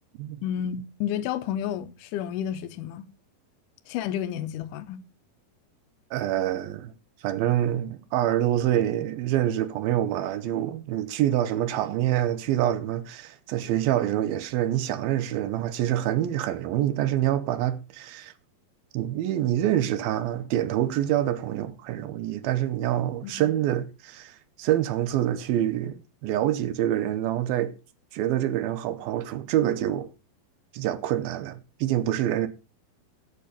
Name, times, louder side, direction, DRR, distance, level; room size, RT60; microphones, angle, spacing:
voice 1, 0.4-3.1 3.9-5.0 23.2-23.5, left 10 dB, 75° left, 2.2 m, -31 dB
voice 2, 6.1-6.9 7.2-18.3 18.9-27.7 28.1-30.1 30.7-32.5, right 12 dB, 80° right, 2.7 m, -26 dB
11.5 x 7.9 x 5.0 m
omnidirectional pair, 4.3 m